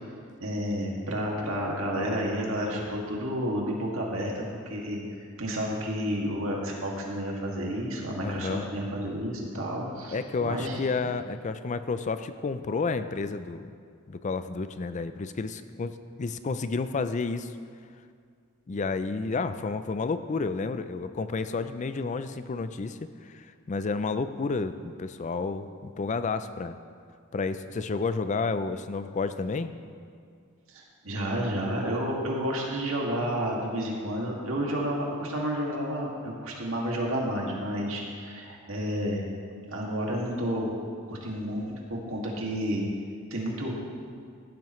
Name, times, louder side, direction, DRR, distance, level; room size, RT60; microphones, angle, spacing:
voice 1, 0.4-10.8 30.7-39.3 39.7-40.7 41.1-42.8 43.3-43.7, equal, 70° right, -2 dB, 2.2 m, -31 dB
voice 2, 8.2-8.7 10.1-13.7 14.1-17.6 18.7-26.8 27.3-29.7, left 4 dB, 35° left, 11 dB, 0.4 m, -31 dB
15.0 x 12.0 x 3.2 m, 2.2 s
head